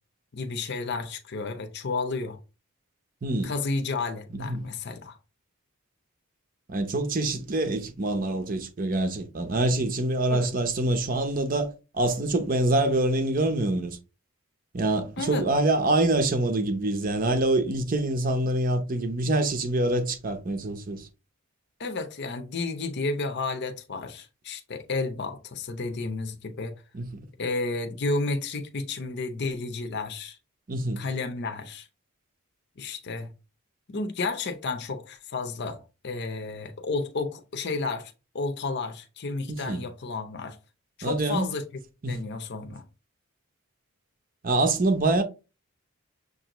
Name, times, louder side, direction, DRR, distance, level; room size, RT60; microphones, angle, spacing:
voice 1, 0.3-2.4 3.4-5.2 10.3-10.5 15.2-15.4 21.8-26.8 27.4-30.4 31.0-31.9 32.8-33.3 33.9-40.6 41.0-41.6 42.1-42.8, left 3 dB, 50° left, 0.6 m, -32 dB
voice 2, 3.2-3.6 4.3-4.7 6.7-14.0 14.7-21.1 26.9-27.1 30.7-31.0 39.5-39.8 41.0-41.5 42.0-42.2 44.4-45.2, right 2 dB, 40° right, 0.6 m, -25 dB
6.6 x 2.6 x 3.0 m
head